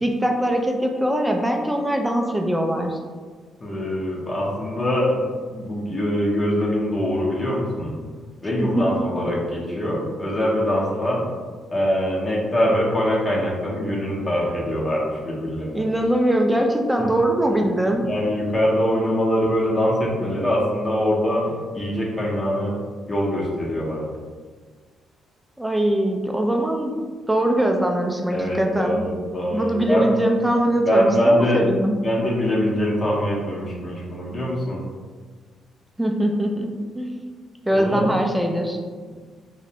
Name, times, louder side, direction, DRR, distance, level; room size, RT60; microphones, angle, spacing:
voice 1, 0.0-3.0 8.6-8.8 15.7-18.1 25.6-26.9 27.3-29.1 29.5-32.0 36.0-37.2 37.6-38.8, right 1 dB, 5° right, 2 dB, 0.3 m, -22 dB
voice 2, 3.6-5.2 5.5-7.9 8.4-11.2 11.7-15.8 18.0-21.5 21.7-22.7 23.1-24.0 28.3-30.1 30.8-31.6 32.0-34.8 37.7-38.1, equal, 30° left, -4 dB, 0.6 m, -23 dB
2.5 x 2.0 x 2.8 m, 1.5 s
cardioid pair, 90°, 0 cm